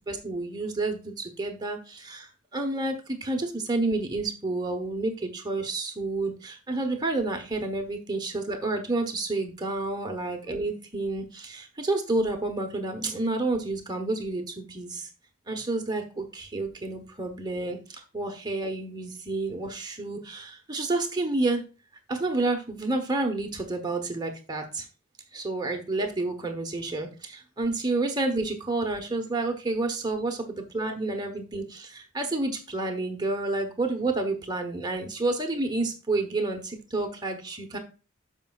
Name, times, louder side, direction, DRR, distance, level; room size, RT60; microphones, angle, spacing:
voice 1, 0.1-15.1 15.5-21.6 22.1-24.9 25.3-37.8, right 2 dB, 20° right, 4 dB, 1.0 m, -30 dB
13.0 x 5.3 x 2.4 m, 0.33 s
head